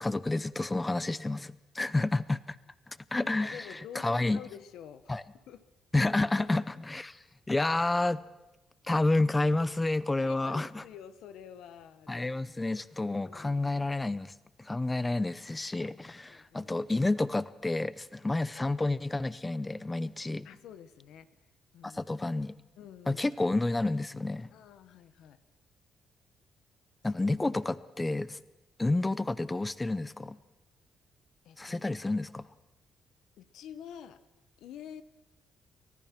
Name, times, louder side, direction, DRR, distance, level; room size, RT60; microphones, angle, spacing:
voice 1, 0.0-2.6 2.9-4.4 5.1-5.2 5.9-8.2 8.8-10.8 12.1-14.3 14.6-20.5 21.8-22.6 23.1-24.5 27.0-28.4 28.8-30.4 31.6-32.5, left 2 dB, 15° left, 17 dB, 0.6 m, -30 dB
voice 2, 3.4-5.6 6.4-6.5 10.2-12.3 12.5-12.6 13.1-13.6 16.3-16.7 20.4-21.3 21.7-22.0 22.8-23.2 24.5-25.4 31.4-31.9 33.4-34.2 34.6-35.0, left 9 dB, 85° left, 13 dB, 1.0 m, -48 dB
30.0 x 14.5 x 6.0 m, 1.0 s
cardioid pair, 90°, 0 cm